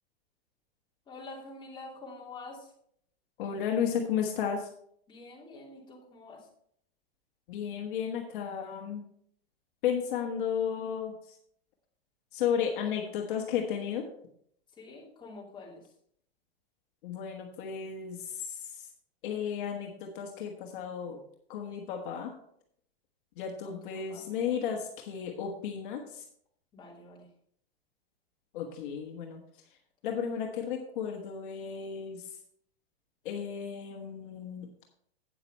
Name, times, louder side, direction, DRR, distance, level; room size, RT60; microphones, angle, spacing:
voice 1, 1.1-2.7 5.1-6.5 14.7-15.9 23.6-24.2 26.7-27.3, left 3 dB, 15° left, -4 dB, 2.8 m, -47 dB
voice 2, 3.4-4.7 7.5-9.0 9.8-11.4 12.3-14.1 17.0-18.9 19.2-21.2 21.5-22.3 23.4-26.2 28.5-29.4 30.0-32.4 33.2-34.7, left 8 dB, 55° left, 2 dB, 1.5 m, -33 dB
8.6 x 7.9 x 4.3 m, 0.67 s
hypercardioid pair, 145°, 30 cm